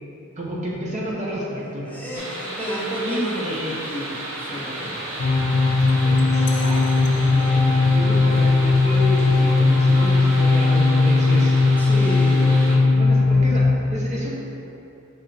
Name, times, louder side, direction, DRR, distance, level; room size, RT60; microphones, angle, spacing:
voice 1, 0.4-2.3 3.0-3.8 6.0-11.6 11.9-14.3, equal, 30° right, -4 dB, 0.7 m, -30 dB
voice 2, 1.9-5.1 11.8-12.5, equal, 5° left, -7 dB, 0.9 m, -31 dB
sound 1, 2.1-12.8, right 1 dB, 70° right, 1.1 m, -33 dB
sound 2, 5.2-13.7, left 3 dB, 55° left, 0.5 m, -18 dB
6.7 x 4.2 x 3.3 m, 2.8 s
head